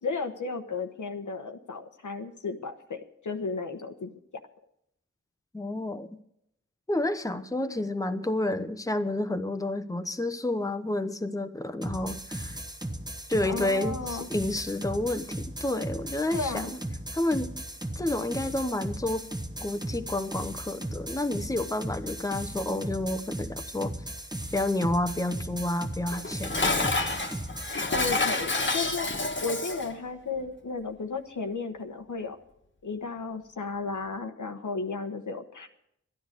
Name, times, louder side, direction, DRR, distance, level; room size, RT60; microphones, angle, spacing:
voice 1, 0.0-4.1 13.4-14.3 16.3-16.7 27.9-29.1 29.4-32.4 32.8-35.7, left 4 dB, 85° left, 6 dB, 1.1 m, -34 dB
voice 2, 5.5-6.1 6.9-12.6 13.3-16.7 17.1-17.5 18.0-19.2 19.6-23.9 24.5-26.8, left 1 dB, 10° left, 9 dB, 0.8 m, -30 dB
sound 1, 11.8-27.8, right 1 dB, 15° right, 1.3 m, -37 dB
Dishes pots and pans, 26.1-29.9, left 3 dB, 40° left, 1.4 m, -28 dB
13.0 x 10.5 x 6.6 m, 0.75 s
wide cardioid pair, 65°, 30 cm